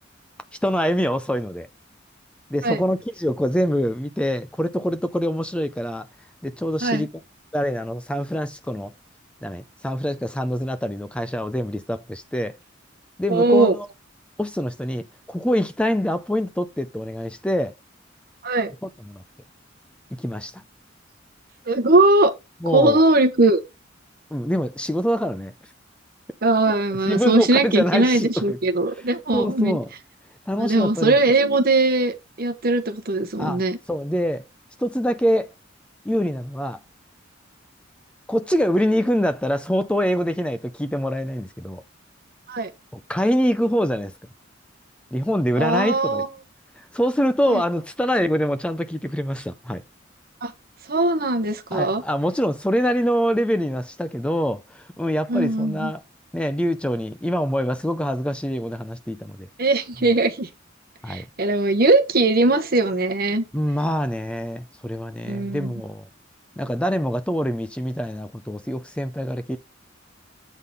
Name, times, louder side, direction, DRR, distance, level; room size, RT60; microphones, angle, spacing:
voice 1, 0.6-1.7 2.5-6.1 6.4-7.2 7.5-8.9 9.4-12.5 13.2-13.9 14.4-17.7 18.8-19.2 20.2-20.6 22.6-23.0 24.3-25.5 27.0-28.6 29.3-29.9 30.5-31.2 33.4-34.5 34.8-35.5 36.1-36.8 38.3-41.8 42.9-44.1 45.1-46.2 46.8-49.8 51.7-56.0 56.3-59.5 61.0-61.2 63.5-66.1 66.6-69.6, equal, 5° left, 0.4 m, -25 dB
voice 2, 13.3-13.7 18.4-18.7 21.7-22.3 22.7-23.6 26.4-29.8 30.6-33.8 42.5-42.7 45.6-46.3 47.5-47.6 50.4-50.5 50.9-52.0 55.3-55.9 59.6-60.5 61.1-63.4 65.2-65.7, right 2 dB, 50° right, 1.0 m, -20 dB
8.2 x 3.7 x 5.3 m
head